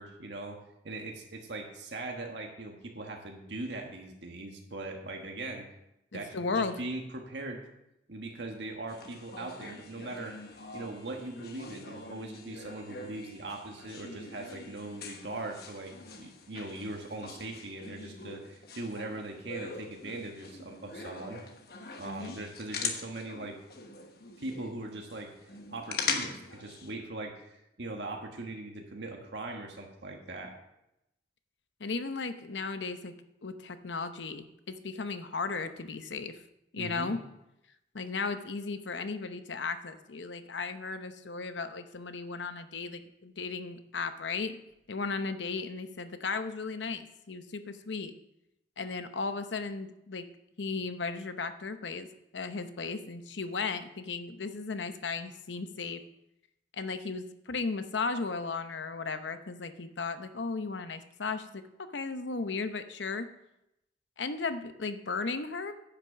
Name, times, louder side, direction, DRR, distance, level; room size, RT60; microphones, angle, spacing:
voice 1, 0.0-5.7 6.1-7.7 8.1-10.3 10.7-21.4 22.0-23.6 24.4-25.3 25.7-30.6 36.7-37.1, right 2 dB, 75° right, 2 dB, 1.4 m, -40 dB
voice 2, 6.1-6.7 22.0-22.4 31.8-33.1 33.4-36.4 36.7-37.2 37.9-44.6 44.9-48.1 48.8-50.3 50.6-52.1 52.3-56.0 56.7-63.3 64.2-65.7, left 4 dB, 90° left, 10 dB, 0.8 m, -35 dB
sound 1, 8.9-26.9, left 5 dB, 55° left, 1.2 m, -42 dB
10.5 x 6.0 x 7.2 m, 0.85 s
head